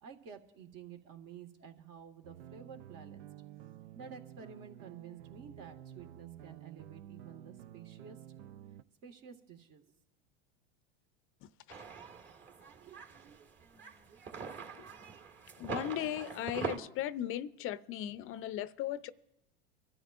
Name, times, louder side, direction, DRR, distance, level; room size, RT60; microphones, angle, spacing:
voice 1, 0.0-3.3 3.9-8.2 9.0-9.9 12.4-13.0, right 7 dB, 50° right, 1.8 m, -51 dB
sound 1, 2.2-8.8, right 11 dB, 80° right, 0.6 m, -51 dB
sound 2, 11.7-16.8, right 5 dB, 35° right, 1.8 m, -43 dB
voice 2, 15.6-19.1, left 12 dB, 45° left, 0.5 m, -37 dB
24.5 x 13.0 x 2.5 m
hypercardioid pair, 100°, 32 cm